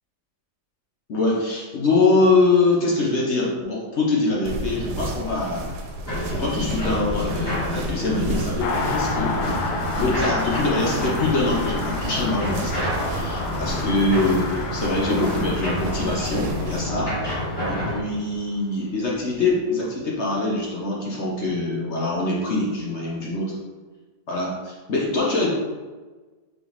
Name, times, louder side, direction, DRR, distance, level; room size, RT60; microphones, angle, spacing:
voice 1, 1.1-5.7 6.0-17.1 17.7-23.5 24.3-25.5, left 2 dB, 55° left, -4 dB, 0.9 m, -24 dB
sound 1, 4.4-16.8, right 1 dB, 75° right, 1.2 m, -32 dB
sound 2, 6.1-18.0, equal, 20° left, 0.9 m, -29 dB
Car passing by, 8.6-18.6 18.8-18.9, left 4 dB, 75° left, 1.1 m, -31 dB
4.2 x 3.5 x 3.0 m, 1.3 s
omnidirectional pair, 1.8 m